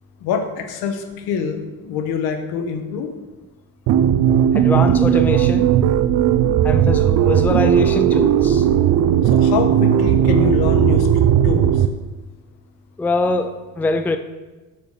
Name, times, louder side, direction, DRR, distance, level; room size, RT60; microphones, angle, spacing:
voice 1, 0.2-3.1 9.2-11.1 11.4-11.8, left 6 dB, 70° left, 6 dB, 1.3 m, -25 dB
sound 1, 3.9-11.9, right 9 dB, 55° right, 0.6 m, -16 dB
voice 2, 4.5-5.7 6.6-8.7 13.0-14.2, left 2 dB, 5° left, 7 dB, 0.4 m, -22 dB
6.7 x 6.2 x 6.6 m, 1.2 s
cardioid pair, 115°, 38 cm